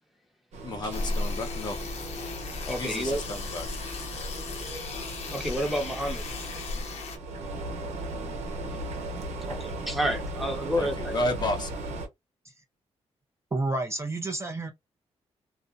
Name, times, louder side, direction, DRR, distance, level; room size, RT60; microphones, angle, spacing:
sound 1, 0.5-12.1, right 1 dB, 80° right, 0.7 m, -36 dB
voice 1, 0.6-1.8 2.8-3.7 10.8-11.7, left 1 dB, 40° left, 0.9 m, -32 dB
sound 2, 0.9-7.2, left 4 dB, 70° left, 0.9 m, -38 dB
voice 2, 2.7-3.2 5.3-6.2 9.5-11.3, equal, ahead, 0.8 m, -30 dB
voice 3, 13.5-14.7, right 2 dB, 25° right, 0.4 m, -29 dB
2.4 x 2.1 x 2.4 m
cardioid pair, 105°, 11 cm